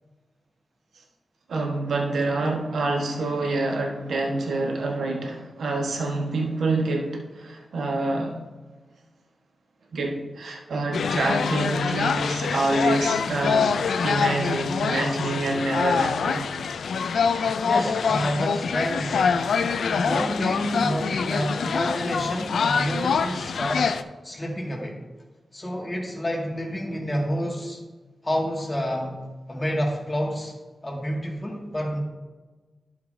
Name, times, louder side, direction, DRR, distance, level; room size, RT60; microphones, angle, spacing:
voice 1, 1.5-8.4 9.9-16.5, right 2 dB, 85° right, 1 dB, 1.3 m, -27 dB
sound 1, 10.9-24.0, left 6 dB, 90° left, 0.4 m, -25 dB
voice 2, 17.6-19.4 19.8-24.0 24.2-25.0 25.5-27.8 28.2-29.2 29.5-30.5 30.8-32.0, equal, 25° left, -1 dB, 2.1 m, -29 dB
11.0 x 6.9 x 2.7 m, 1.3 s
cardioid pair, 65°, 0 cm